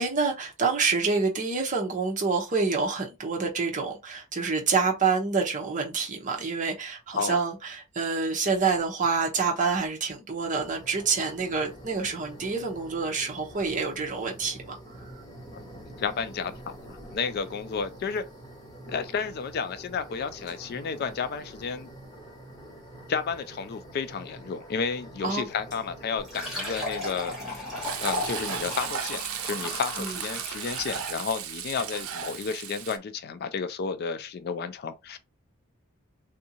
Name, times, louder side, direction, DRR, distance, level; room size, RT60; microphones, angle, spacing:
voice 1, 0.0-14.8 25.2-25.5 30.0-30.2, right 4 dB, 35° right, 0.9 m, -27 dB
sound 1, 10.6-28.9, right 1 dB, 20° left, 1.1 m, -46 dB
voice 2, 16.0-18.2 18.9-21.9 23.1-27.7 28.0-35.2, left 5 dB, 45° left, 0.3 m, -32 dB
Fill (with liquid), 26.2-31.3, left 1 dB, ahead, 1.6 m, -35 dB
Frying (food), 27.8-33.0, right 9 dB, 80° right, 0.5 m, -35 dB
3.6 x 2.7 x 2.8 m
head